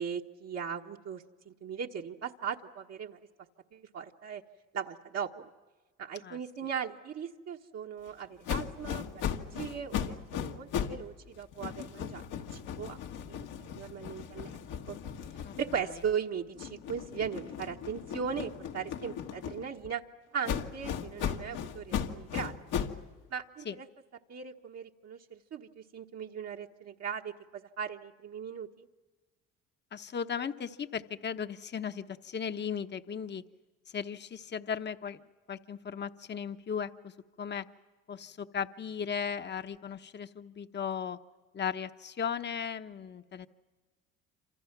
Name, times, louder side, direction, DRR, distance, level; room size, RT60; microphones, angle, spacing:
voice 1, 0.0-3.2 3.7-4.4 4.7-5.3 6.0-9.2 9.5-13.0 13.2-14.6 14.9-15.0 15.6-20.0 20.3-22.5 23.3-23.9 24.3-27.3 27.8-28.9, right 7 dB, 50° right, 0 dB, 1.4 m, -38 dB
sound 1, 8.4-11.0 11.3-16.1 16.5-19.9 20.4-23.0, left 8 dB, 75° left, 1.8 m, -37 dB
voice 2, 29.9-33.4 33.9-35.2 35.5-37.1 37.4-37.7 38.1-41.2 41.5-43.5, left 7 dB, 35° left, 9 dB, 1.1 m, -36 dB
28.0 x 26.5 x 6.0 m, 1.3 s
supercardioid pair, 75°, 32 cm